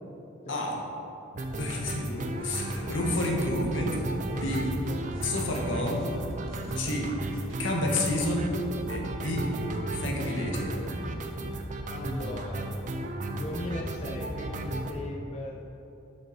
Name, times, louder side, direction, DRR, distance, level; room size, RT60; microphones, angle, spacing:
sound 1, 1.3-14.9, right 2 dB, 40° right, 0.5 m, -34 dB
voice 1, 1.6-4.0 4.3-4.7 5.2-6.1 6.7-7.1 7.6-8.5 8.9-9.5 9.9-10.7, left 1 dB, 75° left, 0 dB, 1.1 m, -30 dB
sound 2, 2.7-7.7, equal, 80° right, 1.1 m, -46 dB
voice 2, 11.9-12.7 13.3-15.6, left 1 dB, 30° left, -1 dB, 0.5 m, -38 dB
6.6 x 6.0 x 4.0 m, 2.9 s
head